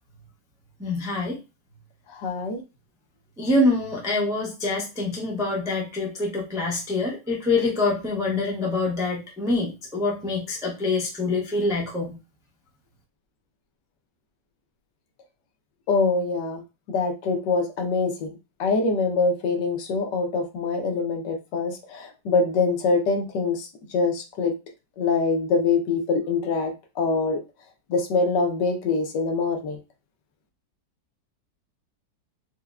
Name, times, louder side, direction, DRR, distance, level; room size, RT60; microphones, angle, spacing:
voice 1, 0.8-1.4 3.4-12.1, left 2 dB, 5° right, -3 dB, 0.3 m, -25 dB
voice 2, 2.1-2.6 15.9-16.6 16.9-18.3 18.6-23.7 23.9-24.5 25.0-27.4 27.9-29.8, left 4 dB, 75° left, 4 dB, 1.3 m, -24 dB
4.4 x 2.1 x 2.3 m, 0.28 s
omnidirectional pair, 1.9 m